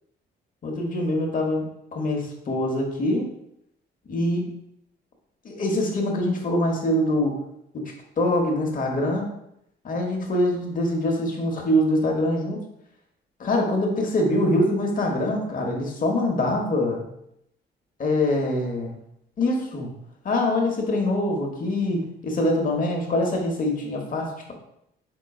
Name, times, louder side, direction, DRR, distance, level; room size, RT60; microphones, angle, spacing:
voice 1, 0.6-3.3 4.1-4.6 5.4-7.3 8.2-9.3 9.8-12.6 13.4-17.0 18.0-18.9 19.4-19.9 20.2-24.5, left 1 dB, 45° left, 1 dB, 1.0 m, -24 dB
4.7 x 3.7 x 2.4 m, 0.79 s
cardioid pair, 90°, 20 cm